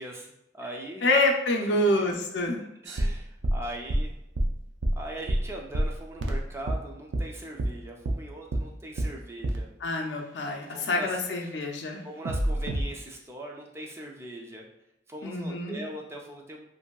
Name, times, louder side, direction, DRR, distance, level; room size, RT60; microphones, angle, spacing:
voice 1, 0.0-1.1 1.7-2.1 2.8-4.1 5.0-9.7 10.7-11.5 12.0-14.6 15.1-16.7, right 1 dB, 15° right, 0 dB, 0.3 m, -40 dB
voice 2, 1.0-2.6 9.8-12.0 15.2-15.8, left 2 dB, 75° left, 2 dB, 0.5 m, -26 dB
sound 1, 2.9-6.8 7.1-7.3 7.6-7.7 8.0-8.2 8.5-8.7 9.0-9.1 9.4-9.6 12.2-12.8, right 1 dB, 80° right, 0.4 m, -27 dB
2.9 x 2.6 x 2.2 m, 0.85 s
head